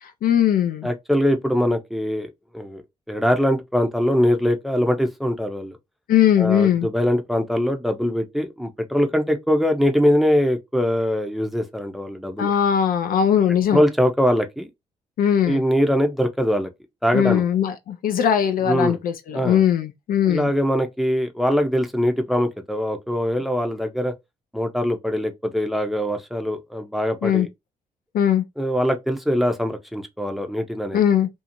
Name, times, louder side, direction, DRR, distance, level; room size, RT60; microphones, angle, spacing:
voice 1, 0.0-0.9 6.1-6.9 12.4-13.8 15.2-15.6 17.1-20.5 27.2-27.5 28.1-28.4 30.9-31.3, left 9 dB, 55° left, 0.5 m, -20 dB
voice 2, 0.8-2.8 3.1-5.8 6.4-12.5 13.7-14.7 15.4-16.7 17.0-17.4 18.6-19.0 19.3-19.6 20.3-24.1 24.5-27.5 28.6-31.0, equal, ahead, 0.7 m, -22 dB
2.6 x 2.4 x 2.9 m
hypercardioid pair, 45°, 17 cm